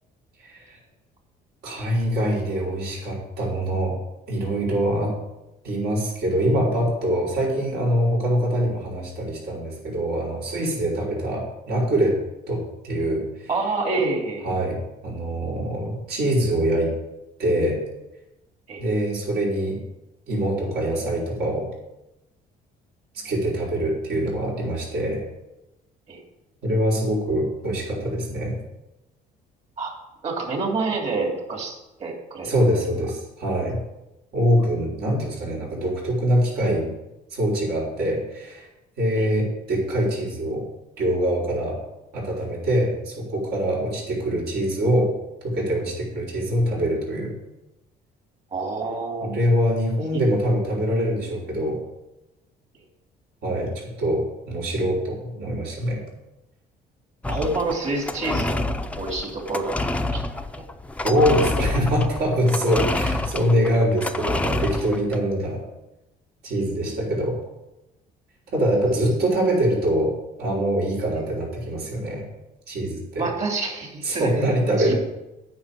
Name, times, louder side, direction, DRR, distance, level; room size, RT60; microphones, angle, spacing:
voice 1, 0.4-0.8 1.6-4.0 4.3-5.1 5.6-12.2 12.5-13.5 14.4-16.9 17.4-17.8 18.8-19.8 20.3-21.7 23.1-25.2 26.6-28.5 32.4-33.8 34.3-36.9 37.3-38.7 39.0-40.6 41.0-41.8 42.1-45.1 45.4-47.4 49.2-51.8 53.4-56.0 61.0-65.6 66.4-67.4 68.5-70.1 70.4-72.2 72.7-73.3 74.0-74.9, right 1 dB, 70° right, -4 dB, 5.0 m, -24 dB
voice 2, 13.5-14.6 18.7-18.8 26.1-26.2 29.8-29.9 30.2-32.5 39.1-39.3 48.5-49.3 50.1-50.2 57.3-59.7 60.1-60.7 66.9-67.1 73.2-74.3 74.8-74.9, right 3 dB, 40° right, 2 dB, 3.3 m, -28 dB
sound 1, 57.2-65.2, left 2 dB, 10° left, 0.6 m, -28 dB
9.4 x 6.1 x 8.6 m, 0.94 s
cardioid pair, 110°, 17 cm